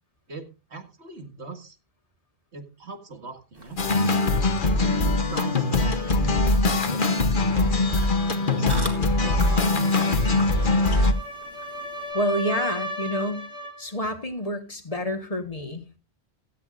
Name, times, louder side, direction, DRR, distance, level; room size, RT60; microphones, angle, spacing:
voice 1, 0.3-1.8 2.5-3.8 4.6-10.5, right 2 dB, 90° right, 5 dB, 2.3 m, -41 dB
sound 1, 3.5-12.1, equal, 20° right, 2.6 m, -43 dB
sound 2, 3.8-11.1, left 2 dB, 50° left, 1.3 m, -22 dB
sound 3, 8.9-13.9, equal, 85° left, 2.4 m, -35 dB
voice 2, 12.1-13.5 13.8-16.0, equal, 35° left, 7 dB, 1.7 m, -28 dB
16.5 x 13.0 x 2.6 m, 0.30 s
omnidirectional pair, 1.1 m